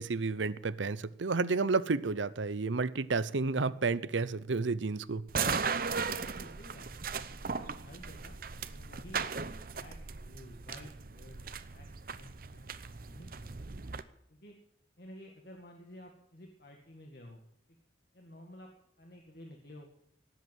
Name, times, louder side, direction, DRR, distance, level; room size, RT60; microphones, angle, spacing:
voice 1, 0.0-5.2, right 4 dB, 90° right, 0.7 m, -31 dB
sound 1, 5.3-14.0, right 5 dB, 50° right, 0.8 m, -37 dB
voice 2, 5.7-6.9 7.4-8.4 8.7-9.2 9.7-10.0 10.2-11.4 11.7-11.9 12.1-12.7 13.1-13.5 13.8-13.9 14.3-14.5 15.0-17.4 18.1-18.7 19.0-19.9, left 1 dB, 55° left, 2.1 m, -52 dB
18.5 x 8.2 x 9.2 m
head